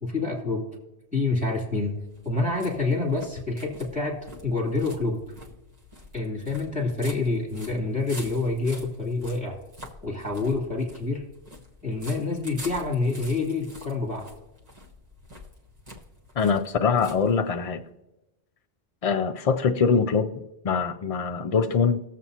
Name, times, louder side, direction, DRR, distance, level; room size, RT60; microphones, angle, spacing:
voice 1, 0.0-0.7 1.1-2.0 2.2-5.2 6.1-9.6 10.0-11.3 11.8-14.3, left 3 dB, 20° right, -3 dB, 2.4 m, -27 dB
sound 1, 1.3-17.8, equal, 35° right, 1.3 m, -47 dB
voice 2, 16.4-17.8 19.0-22.0, left 5 dB, 65° left, 6 dB, 0.3 m, -23 dB
20.0 x 7.4 x 2.8 m, 0.98 s
omnidirectional pair, 1.2 m